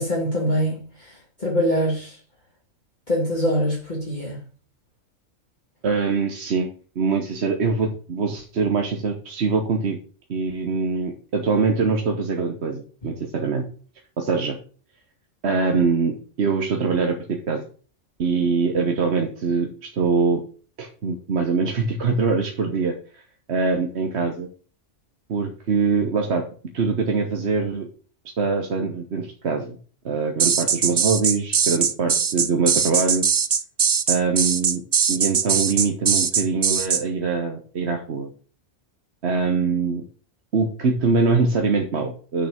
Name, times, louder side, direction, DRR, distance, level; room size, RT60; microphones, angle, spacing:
voice 1, 0.0-2.2 3.1-4.4 13.0-13.1, equal, 35° left, -4 dB, 2.2 m, -24 dB
voice 2, 5.8-6.7 6.9-10.0 10.3-13.6 14.2-14.6 15.4-17.6 18.2-20.4 20.8-23.2 23.5-24.5 25.3-26.5 26.7-27.9 28.4-29.8 30.0-33.2 34.1-34.8 35.1-38.3 39.2-40.0 40.5-42.5, right 4 dB, 60° right, 3 dB, 1.3 m, -23 dB
sound 1, 30.4-37.0, right 6 dB, 40° right, 0.7 m, -21 dB
6.7 x 6.2 x 6.9 m, 0.41 s
omnidirectional pair, 1.3 m